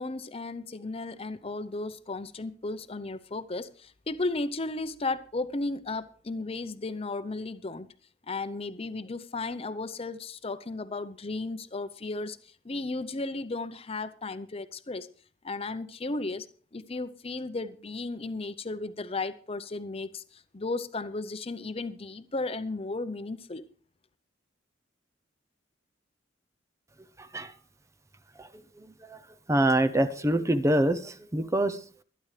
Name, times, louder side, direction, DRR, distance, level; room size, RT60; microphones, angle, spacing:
voice 1, 0.0-7.9 8.3-15.1 15.4-16.5 16.7-23.6, left 3 dB, 30° left, 0.7 m, -34 dB
voice 2, 29.5-31.8, right 1 dB, 15° right, 0.6 m, -25 dB
22.0 x 10.5 x 3.3 m
head